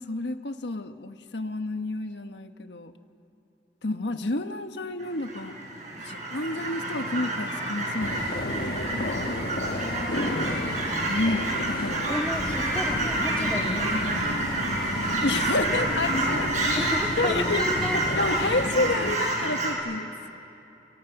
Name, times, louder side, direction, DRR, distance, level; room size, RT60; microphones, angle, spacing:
voice 1, 0.0-2.9 3.8-5.6 6.0-8.9 11.1-12.1 15.2-16.5 17.2-17.6 17.9-20.3, left 2 dB, 80° left, 8 dB, 1.3 m, -30 dB
Fowl / Chirp tweet, 5.0-19.7, right 2 dB, 45° right, 5.8 m, -29 dB
sound 1, 8.0-19.1, left 1 dB, 60° left, 1.4 m, -33 dB
voice 2, 9.8-10.7 12.1-14.7 15.7-16.4 16.8-18.0, left 1 dB, 5° left, 1 dB, 2.1 m, -35 dB
sound 2, 12.3-18.7, left 2 dB, 40° left, 0.7 m, -38 dB
28.5 x 26.5 x 6.0 m, 2.9 s
head